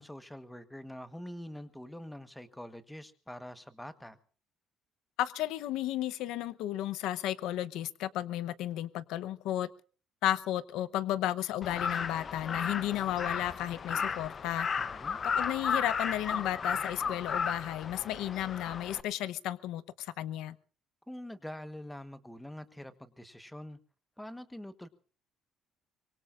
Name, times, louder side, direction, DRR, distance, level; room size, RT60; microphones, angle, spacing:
voice 1, 0.0-4.2 14.8-15.2 21.1-23.8 24.2-24.9, left 1 dB, 5° left, 1.2 m, -45 dB
voice 2, 5.2-9.7 10.2-14.7 15.4-20.6, left 13 dB, 80° left, 0.8 m, -33 dB
Crow, 11.6-19.0, left 6 dB, 30° left, 0.7 m, -34 dB
24.5 x 23.0 x 2.5 m
cardioid pair, 160°, 0 cm